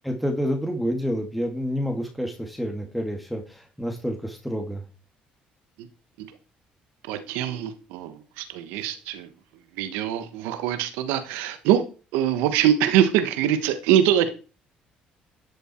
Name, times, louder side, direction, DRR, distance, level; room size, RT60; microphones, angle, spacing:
voice 1, 0.0-4.8, equal, ahead, 2.4 m, -28 dB
voice 2, 7.0-9.3 9.7-11.8 12.1-14.3, right 10 dB, 90° right, 1.3 m, -23 dB
12.0 x 7.0 x 4.5 m
supercardioid pair, 75°, 3 cm